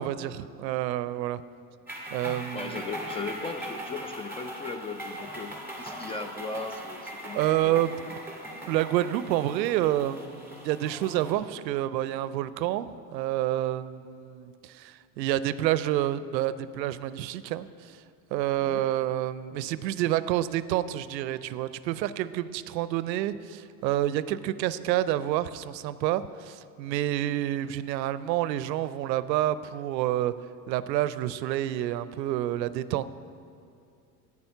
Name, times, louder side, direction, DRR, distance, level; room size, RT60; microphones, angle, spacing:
voice 1, 0.0-1.4 2.1-2.8 7.3-7.9 8.7-18.0 18.3-30.3 30.7-33.1, right 13 dB, 85° right, 15 dB, 0.6 m, -28 dB
sound 1, 1.9-11.3, right 1 dB, 5° right, 2.2 m, -40 dB
voice 2, 2.5-7.8 18.6-18.9, left 3 dB, 15° left, 7 dB, 0.3 m, -37 dB
10.5 x 8.6 x 5.7 m, 2.5 s
hypercardioid pair, 90°, 50 cm